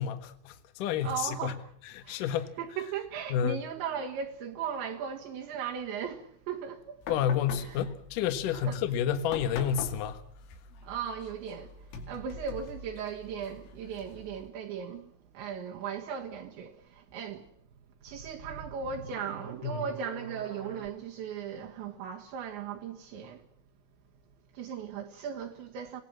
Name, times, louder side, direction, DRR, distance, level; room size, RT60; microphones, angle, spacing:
voice 1, 0.0-1.6 2.0-2.5 3.3-3.6 7.1-10.2 19.6-19.8, left 9 dB, 60° left, 2.3 m, -30 dB
voice 2, 1.0-1.7 2.0-2.3 2.6-7.2 7.6-7.8 8.5-8.8 10.8-17.5 18.0-23.5 24.5-26.0, right 7 dB, 70° right, 3.6 m, -37 dB
sound 1, 7.0-14.5, left 4 dB, 85° left, 5.2 m, -44 dB
sound 2, 17.6-20.9, right 5 dB, 50° right, 1.1 m, -45 dB
26.5 x 18.5 x 7.6 m
omnidirectional pair, 5.7 m